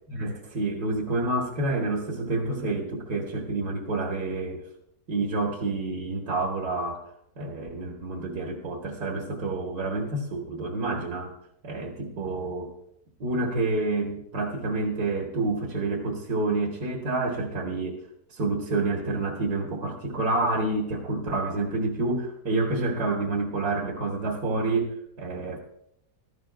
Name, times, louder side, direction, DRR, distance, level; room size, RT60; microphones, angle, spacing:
voice 1, 0.1-4.6 5.1-7.0 7.4-11.3 11.6-12.7 13.2-18.0 18.3-25.6, right 2 dB, 75° right, 0 dB, 2.2 m, -28 dB
17.0 x 14.0 x 2.5 m, 0.73 s
omnidirectional pair, 1.7 m